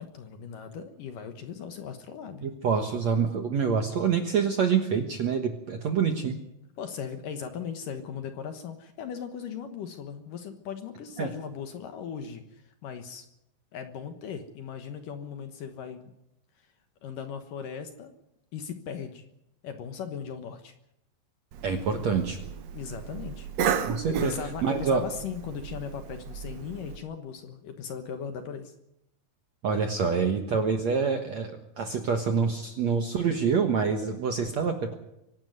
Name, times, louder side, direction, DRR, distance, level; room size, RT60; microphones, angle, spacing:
voice 1, 0.0-2.5 6.8-13.3 13.7-16.1 17.0-18.1 18.5-19.2 19.6-20.7 22.7-23.7 24.1-28.7, left 7 dB, 65° left, 7 dB, 2.5 m, -38 dB
voice 2, 2.4-6.4 11.2-11.3 21.6-22.4 23.9-24.3 24.6-25.0 29.6-35.0, right 6 dB, 60° right, 5 dB, 1.8 m, -26 dB
Cough, 21.5-27.0, right 8 dB, 75° right, 1.5 m, -34 dB
24.5 x 12.0 x 9.4 m, 0.84 s
omnidirectional pair, 4.9 m